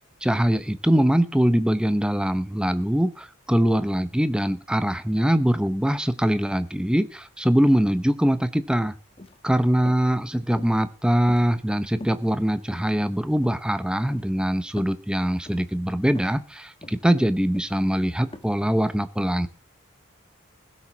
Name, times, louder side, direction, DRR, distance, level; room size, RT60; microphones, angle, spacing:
voice 1, 0.2-8.9 9.4-19.5, equal, 5° right, 12 dB, 0.7 m, -22 dB
sound 1, 9.1-9.4 9.9-10.1 10.5-10.9 11.3-11.7 12.0-12.3 12.7-13.1 13.4-13.6 14.1-14.3 14.8-15.0 15.5-15.7 16.1-16.4 16.8-17.1 17.5-17.8 18.3-18.4, left 1 dB, 25° left, 1.1 m, -43 dB
16.0 x 7.2 x 6.1 m, 0.37 s
head